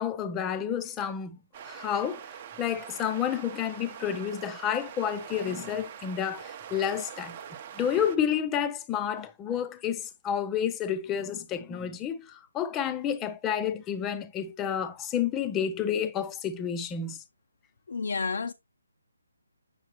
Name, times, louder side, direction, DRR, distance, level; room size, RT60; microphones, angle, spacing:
voice 1, 0.0-1.4 1.6-7.4 7.8-17.2, left 8 dB, 10° left, 0.5 m, -30 dB
sound 1, 1.5-8.2, right 8 dB, 25° right, 0.7 m, -44 dB
voice 2, 17.9-18.5, left 4 dB, 65° left, 0.5 m, -30 dB
7.1 x 6.8 x 2.9 m
hypercardioid pair, 165°, 0 cm